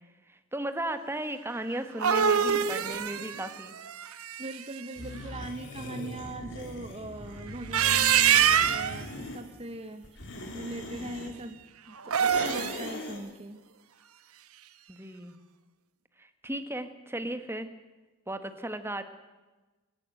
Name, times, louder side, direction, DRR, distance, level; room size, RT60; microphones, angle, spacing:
voice 1, 0.3-3.7 14.9-15.4 16.2-17.7 18.3-19.0, right 1 dB, 10° right, 9 dB, 1.3 m, -35 dB
sound 1, 1.7-4.8 7.5-9.0 12.0-12.9, right 8 dB, 75° right, 1.0 m, -25 dB
voice 2, 4.4-11.6 11.9-13.6, right 2 dB, 25° right, 8 dB, 0.9 m, -41 dB
sound 2, 5.0-9.4 10.0-11.3 12.2-13.2, left 1 dB, 55° left, 3.5 m, -40 dB
24.5 x 12.0 x 9.0 m, 1.2 s
head